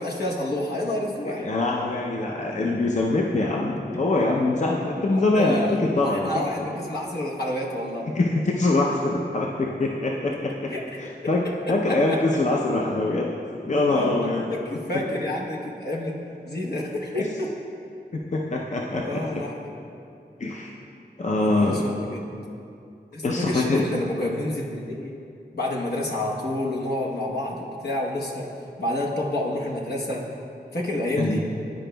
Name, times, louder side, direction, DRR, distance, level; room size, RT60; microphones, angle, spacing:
voice 1, 0.0-1.4 5.1-8.1 10.7-10.8 11.9-12.2 13.9-14.1 14.5-16.2 16.4-17.5 19.0-19.6 21.4-22.3 23.1-25.1 25.5-28.5 28.8-30.3 30.7-31.4, left 1 dB, 70° left, -4 dB, 0.9 m, -29 dB
voice 2, 1.4-6.3 8.1-10.7 11.0-13.3 13.7-14.4 14.9-15.0 18.1-19.4 20.4-20.7 21.2-21.8 23.2-23.8 31.2-31.4, left 2 dB, 45° left, -1 dB, 0.5 m, -24 dB
10.5 x 5.0 x 2.2 m, 2.6 s
wide cardioid pair, 55°, 17 cm